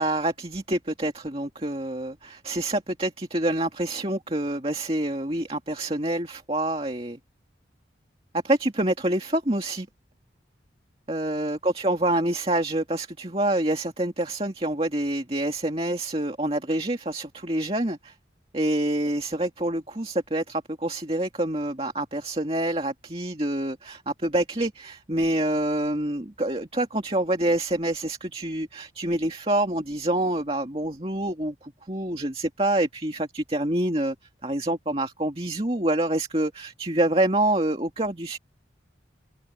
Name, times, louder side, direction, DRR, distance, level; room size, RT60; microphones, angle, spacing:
voice 1, 0.0-7.2 8.4-9.9 11.1-18.2 18.5-34.2 34.4-38.4, right 1 dB, 30° right, 2.3 m, -27 dB
head